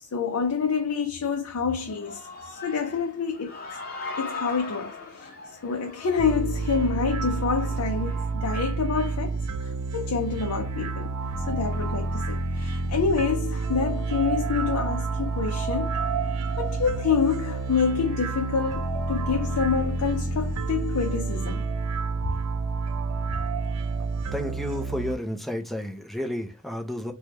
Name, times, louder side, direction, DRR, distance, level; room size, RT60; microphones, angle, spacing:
voice 1, 0.1-3.6 4.2-5.3 5.6-11.1 11.5-16.0 16.6-21.6, left 5 dB, 75° left, 0.5 m, -27 dB
Human voice / Cheering, 1.7-8.3, left 3 dB, 45° left, 0.7 m, -40 dB
sound 1, 6.2-25.2, right 4 dB, 90° right, 0.4 m, -29 dB
sound 2, 11.2-21.6, left 5 dB, 25° right, 1.4 m, -48 dB
voice 2, 24.3-27.1, left 1 dB, ahead, 0.5 m, -31 dB
3.3 x 2.2 x 2.8 m
head